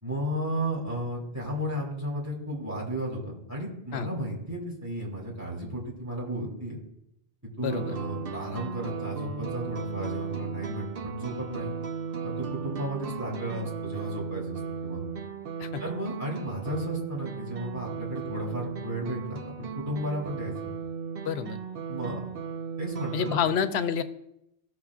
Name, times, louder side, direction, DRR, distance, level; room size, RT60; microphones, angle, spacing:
voice 1, 0.0-6.8 7.6-11.7 12.2-15.1 15.8-20.5 21.9-22.3 22.8-23.4, right 1 dB, 15° right, -5 dB, 2.9 m, -33 dB
voice 2, 7.6-7.9 15.6-15.8 21.2-21.6 23.1-24.0, left 7 dB, 90° left, 11 dB, 0.9 m, -28 dB
sound 1, 7.7-23.4, right 6 dB, 65° right, 0.9 m, -36 dB
16.5 x 6.5 x 2.4 m, 0.82 s
omnidirectional pair, 1.0 m